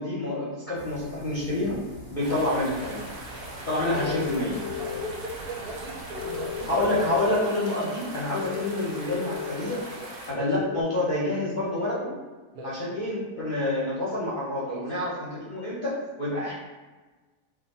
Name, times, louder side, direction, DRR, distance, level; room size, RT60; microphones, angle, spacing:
voice 1, 0.0-1.8 2.1-3.0 3.7-4.6 6.7-9.9 10.3-12.1 12.6-16.5, left 1 dB, 40° left, -7 dB, 0.7 m, -28 dB
sound 1, 0.7-7.3, equal, 15° right, 1.2 m, -45 dB
sound 2, 2.2-10.3, right 2 dB, 60° right, 0.6 m, -41 dB
sound 3, 4.0-5.1 6.2-7.3 8.4-9.5 10.6-10.8, left 10 dB, 70° left, 1.0 m, -34 dB
voice 2, 4.8-6.7 10.0-10.5 12.5-12.8 14.6-14.9, right 2 dB, 75° right, -3 dB, 1.3 m, -39 dB
3.4 x 2.5 x 4.1 m, 1.3 s
omnidirectional pair, 1.7 m